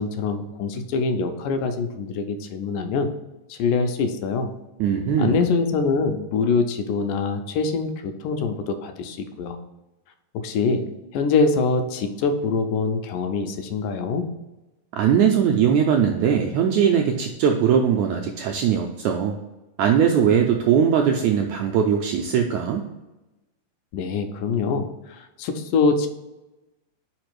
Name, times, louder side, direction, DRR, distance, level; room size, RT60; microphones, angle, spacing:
voice 1, 0.0-3.1 3.5-4.5 5.2-9.6 10.3-14.3 23.9-26.1, left 4 dB, 85° left, 6 dB, 2.1 m, -24 dB
voice 2, 4.8-5.4 14.9-19.4 19.8-22.8, right 8 dB, 85° right, 2 dB, 1.6 m, -20 dB
5.1 x 4.8 x 4.6 m, 1.0 s
omnidirectional pair, 3.8 m